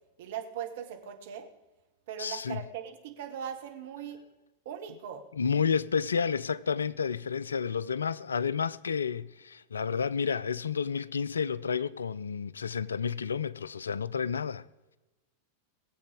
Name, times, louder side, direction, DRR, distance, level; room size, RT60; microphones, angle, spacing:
voice 1, 0.2-1.5 2.1-4.2 4.6-5.3, right 8 dB, 55° right, 1.6 m, -39 dB
voice 2, 2.2-2.6 5.3-14.7, left 6 dB, 70° left, 0.4 m, -30 dB
20.5 x 7.7 x 5.2 m
figure-of-eight pair, 90°, 0 cm